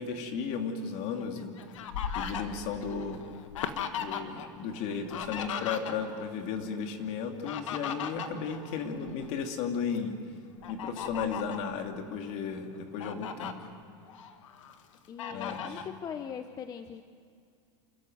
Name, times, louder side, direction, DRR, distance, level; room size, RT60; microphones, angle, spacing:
voice 1, 0.0-1.5 2.1-3.2 3.9-10.1 10.7-13.7 15.3-15.9, left 6 dB, 50° left, 4 dB, 2.8 m, -35 dB
Fowl, 1.2-4.5 4.8-6.3 7.2-9.3 9.8-10.0 10.6-11.7 12.3-12.4 12.7-13.5 14.1-14.7 15.2-15.9, left 8 dB, 85° left, 1.8 m, -37 dB
voice 2, 15.1-17.0, left 7 dB, 25° left, 9 dB, 0.7 m, -40 dB
28.0 x 14.5 x 9.2 m, 2.3 s
supercardioid pair, 140°, 16 cm